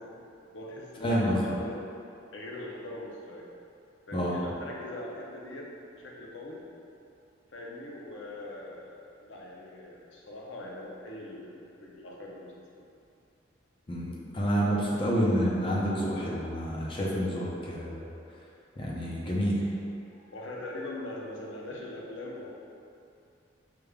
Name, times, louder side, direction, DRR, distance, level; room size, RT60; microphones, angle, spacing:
voice 1, 0.0-1.8 2.3-3.5 4.1-6.7 7.5-12.5 20.3-22.5, left 1 dB, 80° left, -3 dB, 0.6 m, -41 dB
voice 2, 1.0-1.5 4.1-4.4 13.9-18.1 18.8-19.6, equal, 30° left, -5 dB, 0.6 m, -28 dB
4.9 x 3.4 x 2.3 m, 2.6 s
head